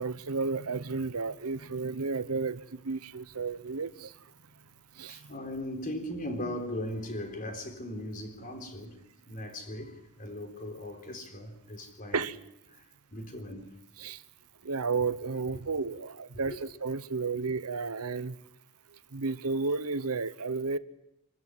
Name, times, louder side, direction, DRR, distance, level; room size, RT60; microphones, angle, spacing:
voice 1, 0.0-4.1 5.0-5.2 12.1-12.4 14.0-14.2 14.6-18.3 19.1-20.8, right 4 dB, 70° right, 0.9 m, -32 dB
voice 2, 5.1-9.0 9.3-12.3 12.7-12.8 13.1-13.7 16.5-16.6, left 1 dB, 40° left, 3.8 m, -38 dB
25.0 x 13.5 x 9.6 m
head